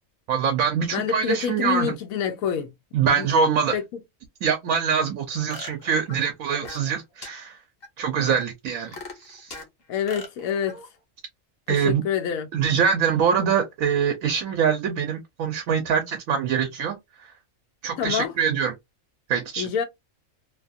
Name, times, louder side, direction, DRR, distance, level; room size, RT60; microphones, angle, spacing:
voice 1, 0.3-2.0 2.9-3.8 4.4-7.6 8.0-9.6 11.7-12.0 12.5-17.3 17.8-18.7 19.3-19.7, right 7 dB, 80° right, 1.0 m, -24 dB
voice 2, 0.9-2.7 3.2-3.3 3.7-3.8 9.9-10.8 11.7-12.5 18.0-18.3 19.6-19.8, left 8 dB, 85° left, 1.0 m, -26 dB
sound 1, 5.5-6.9 7.2-7.3 7.8-7.9 8.4-9.7 10.1-10.9, left 2 dB, 50° left, 1.1 m, -40 dB
2.8 x 2.3 x 2.5 m
omnidirectional pair, 1.4 m